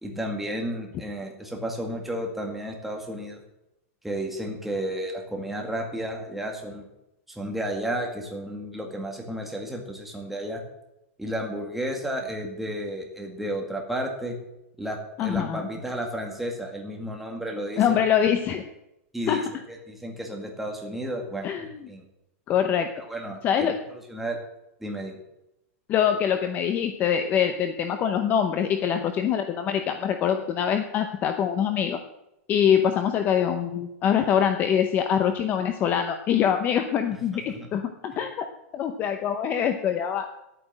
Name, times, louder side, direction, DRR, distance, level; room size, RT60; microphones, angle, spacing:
voice 1, 0.0-3.4 4.0-6.9 7.3-10.6 11.2-14.4 14.8-17.8 19.1-19.4 19.9-21.5 21.9-22.0 23.1-23.7 24.1-24.4 24.8-25.2 37.5-37.7, right 1 dB, ahead, 1 dB, 2.1 m, -32 dB
voice 2, 15.2-15.7 17.8-18.7 19.3-19.4 21.4-21.7 22.5-22.9 23.4-23.7 25.9-32.0 32.5-38.5 38.7-40.3, left 8 dB, 25° left, 8 dB, 0.7 m, -24 dB
11.0 x 9.1 x 7.5 m, 0.89 s
supercardioid pair, 165°, 8 cm